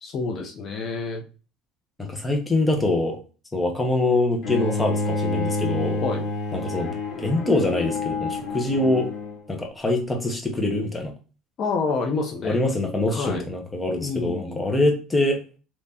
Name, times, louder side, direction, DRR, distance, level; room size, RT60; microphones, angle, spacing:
voice 1, 0.0-1.2 6.0-6.3 11.6-12.6 13.1-13.4 14.0-14.6, left 4 dB, 45° left, 2 dB, 0.6 m, -28 dB
voice 2, 2.0-3.2 3.5-6.0 6.5-9.1 9.5-11.1 12.4-15.4, left 2 dB, 15° left, 3 dB, 0.8 m, -24 dB
Bowed string instrument, 4.4-9.5, left 2 dB, 70° left, 1.1 m, -28 dB
3.4 x 3.0 x 2.7 m, 0.35 s
cardioid pair, 125°, 0 cm